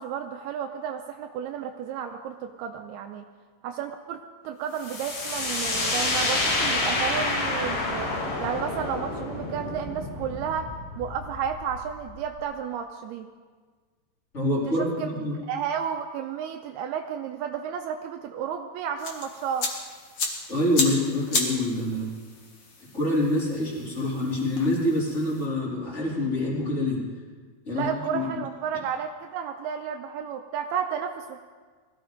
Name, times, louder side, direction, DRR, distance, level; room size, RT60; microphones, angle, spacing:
voice 1, 0.0-3.2 3.6-8.1 8.4-10.7 11.0-13.3 14.7-15.1 15.5-19.7 27.7-31.4, right 8 dB, 80° right, 4 dB, 2.5 m, -32 dB
sound 1, 4.8-12.4, left 2 dB, 85° left, 5.9 m, -29 dB
voice 2, 14.3-15.4 20.5-22.1 22.9-27.0 27.6-28.4, left 1 dB, 20° left, -5 dB, 3.2 m, -26 dB
sound 2, 19.0-25.5, left 3 dB, 45° left, 1.7 m, -33 dB
21.0 x 15.0 x 3.9 m, 1.5 s
omnidirectional pair, 4.7 m